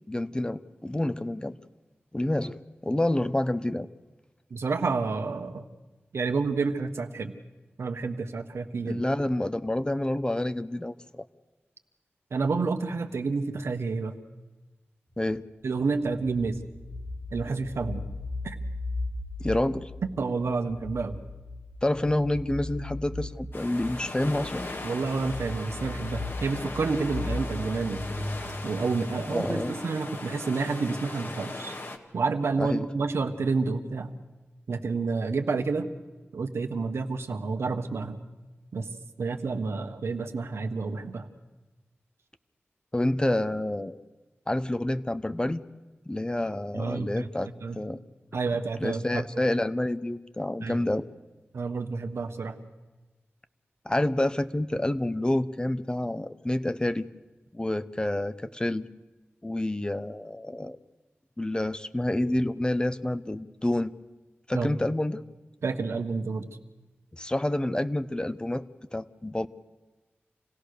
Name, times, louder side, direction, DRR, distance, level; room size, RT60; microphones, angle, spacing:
voice 1, 0.1-1.5 2.1-3.9 8.9-11.2 15.2-15.4 19.4-19.9 21.8-24.7 29.3-29.7 32.6-32.9 42.9-44.0 44.5-45.6 46.1-47.5 47.8-48.0 48.8-51.0 53.8-57.1 57.5-58.9 59.4-60.8 61.4-63.9 64.5-65.2 67.2-68.7 68.9-69.5, left 1 dB, 20° left, 13 dB, 0.9 m, -28 dB
voice 2, 4.5-5.6 6.1-7.4 7.8-9.0 12.3-14.1 15.6-16.6 17.3-18.0 18.4-18.6 20.2-21.2 24.8-28.0 28.6-31.7 32.1-34.1 34.7-35.9 36.3-38.2 38.7-38.9 39.2-41.3 46.7-47.3 47.6-47.8 48.3-49.2 50.6-50.8 51.5-52.6 64.5-64.7 65.6-66.5, right 4 dB, 85° right, 6 dB, 1.4 m, -29 dB
sound 1, 15.8-29.7, left 2 dB, 35° left, 1.9 m, -37 dB
sound 2, 23.5-32.0, left 2 dB, 55° left, 2.0 m, -39 dB
27.0 x 17.0 x 6.7 m, 1.2 s
cardioid pair, 55°, 4 cm